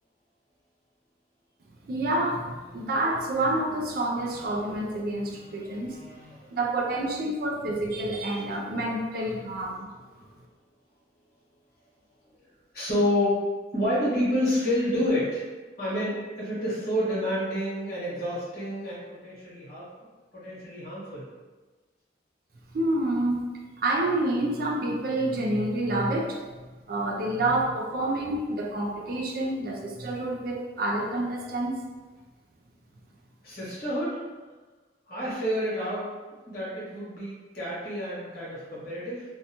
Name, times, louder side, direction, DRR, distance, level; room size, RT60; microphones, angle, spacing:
voice 1, 1.8-6.0 6.5-9.9 22.7-23.5 23.8-26.4 26.9-31.8, right 1 dB, 50° right, 0 dB, 0.4 m, -28 dB
voice 2, 5.3-6.5 12.7-13.4 13.7-15.4 15.8-19.8 20.3-21.2 33.4-34.2 35.1-36.1 36.4-39.2, equal, 50° left, -9 dB, 1.2 m, -29 dB
2.6 x 2.2 x 2.8 m, 1.3 s
head